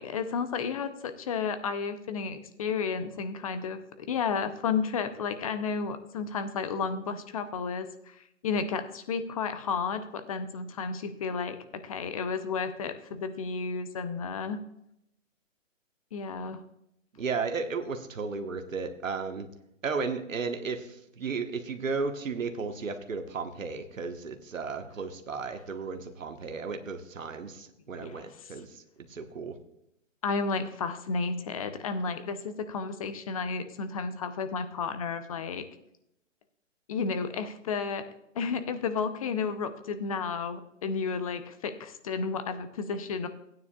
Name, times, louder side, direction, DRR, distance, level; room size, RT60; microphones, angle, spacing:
voice 1, 0.0-8.2 8.4-14.6 16.1-16.6 28.0-28.5 30.2-35.7 36.9-38.0 38.3-43.3, left 5 dB, 30° left, 10 dB, 0.6 m, -32 dB
voice 2, 17.1-19.5 19.8-29.5, right 4 dB, 80° right, 5 dB, 1.3 m, -34 dB
15.5 x 9.4 x 2.3 m, 0.79 s
hypercardioid pair, 150°, 38 cm